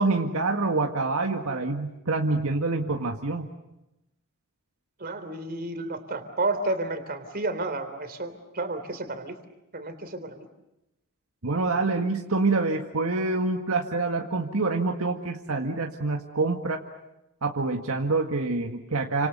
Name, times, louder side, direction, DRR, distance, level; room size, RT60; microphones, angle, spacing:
voice 1, 0.0-3.5 11.4-16.8 17.4-19.3, right 3 dB, 75° right, 3 dB, 1.9 m, -26 dB
voice 2, 5.0-9.4 9.7-10.5, right 2 dB, 45° right, 9 dB, 3.4 m, -31 dB
30.0 x 26.5 x 6.8 m, 0.92 s
head